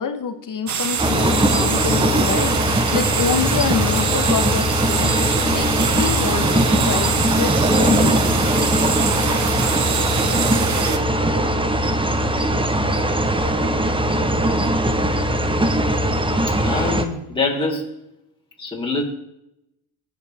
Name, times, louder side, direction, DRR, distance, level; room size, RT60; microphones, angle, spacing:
voice 1, 0.0-8.5, left 7 dB, 45° left, 7 dB, 1.4 m, -27 dB
sound 1, 0.7-11.0, right 7 dB, 40° right, 1.3 m, -25 dB
sound 2, 1.0-17.0, right 1 dB, 10° right, 1.3 m, -20 dB
voice 2, 16.6-18.0 18.6-19.0, left 3 dB, 10° left, -4 dB, 4.3 m, -24 dB
17.5 x 7.6 x 3.7 m, 0.85 s
supercardioid pair, 70°, 45 cm